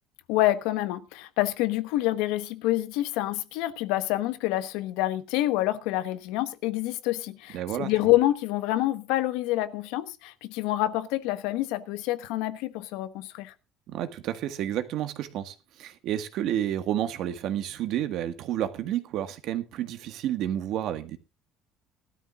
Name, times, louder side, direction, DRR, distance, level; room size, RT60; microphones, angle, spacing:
voice 1, 0.3-13.5, left 15 dB, 90° left, 1.1 m, -27 dB
voice 2, 7.5-7.9 13.9-21.2, right 11 dB, 60° right, 1.7 m, -30 dB
19.0 x 12.5 x 2.5 m
cardioid pair, 140°, 0 cm